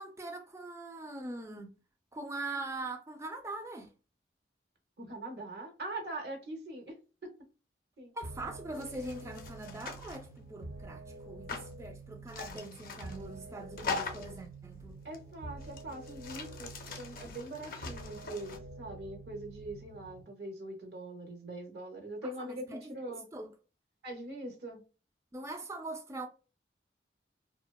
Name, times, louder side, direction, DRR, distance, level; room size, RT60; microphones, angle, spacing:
voice 1, 0.0-1.8 2.1-3.9 8.1-15.0 22.2-23.5 25.3-26.3, right 2 dB, 15° right, 0.3 m, -42 dB
voice 2, 5.0-7.0 7.2-7.3 8.0-8.1 15.0-16.7 17.0-23.2 24.0-24.8, right 1 dB, 60° right, 0.6 m, -42 dB
sound 1, 8.2-20.2, right 2 dB, 85° right, 1.1 m, -48 dB
sound 2, 8.7-10.2 11.5-11.7 12.3-13.2 13.8-14.4 15.1-15.2 15.6-18.6, left 4 dB, 50° left, 0.5 m, -41 dB
2.7 x 2.1 x 2.2 m
head